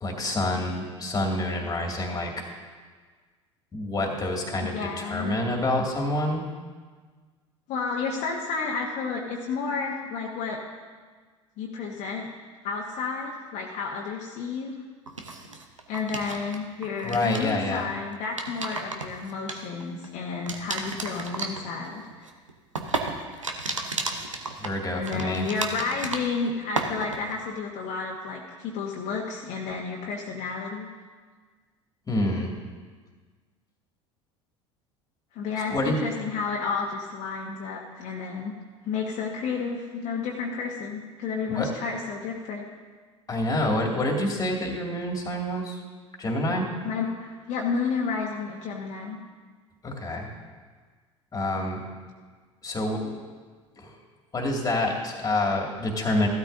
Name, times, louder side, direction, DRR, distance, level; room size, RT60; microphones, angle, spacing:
voice 1, 0.0-2.3 3.7-6.4 17.0-17.9 24.6-25.5 32.1-32.5 35.7-36.0 41.5-41.7 43.3-45.8 46.2-46.7 49.8-50.3 51.3-51.8 52.6-53.2 53.8-54.0 54.3-56.3, left 1 dB, 20° left, 1 dB, 2.3 m, -27 dB
voice 2, 4.7-5.3 7.7-10.6 11.6-12.3 12.6-14.7 15.9-22.0 24.9-30.9 35.3-38.5 38.9-42.7 46.8-49.2, left 5 dB, 50° left, -2 dB, 1.3 m, -31 dB
sound 1, 15.1-16.6 16.8-17.5 18.1-20.1 20.5-26.5 26.8-27.4, right 3 dB, 90° right, 0.8 m, -33 dB
15.0 x 12.5 x 2.7 m, 1.5 s
figure-of-eight pair, 70°, 16 cm